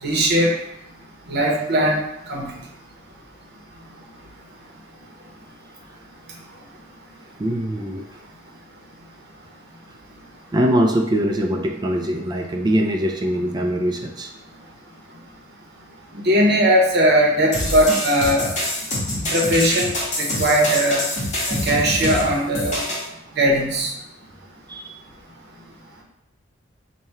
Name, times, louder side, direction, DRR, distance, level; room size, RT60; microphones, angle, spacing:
voice 1, 0.0-0.5 1.3-2.0 2.3-2.6 16.2-18.5 19.3-21.0 21.5-22.8 23.4-23.9, equal, 55° right, 0 dB, 0.8 m, -19 dB
voice 2, 7.4-8.1 10.5-14.3 24.7-24.9, equal, 20° right, 3 dB, 0.3 m, -22 dB
sound 1, 17.5-23.1, left 1 dB, 40° left, 1.1 m, -25 dB
3.4 x 2.2 x 4.2 m, 0.81 s
head